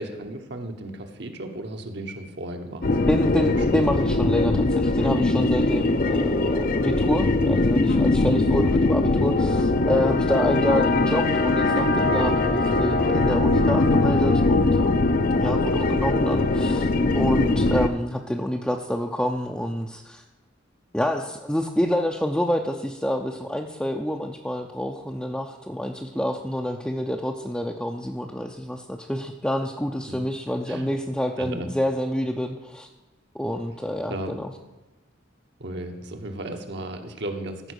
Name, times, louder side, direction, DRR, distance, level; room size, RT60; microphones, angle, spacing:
voice 1, 0.0-2.9 3.5-3.9 17.4-17.7 30.7-30.9 31.4-31.7 34.1-34.3 35.6-37.7, right 1 dB, 65° right, 5 dB, 1.2 m, -35 dB
sound 1, 2.8-17.9, left 2 dB, 50° left, 0.6 m, -21 dB
voice 2, 3.1-16.9 17.1-20.2 20.9-32.9 33.3-34.5, equal, 5° left, 1 dB, 0.5 m, -27 dB
14.5 x 4.9 x 6.5 m, 1.1 s
head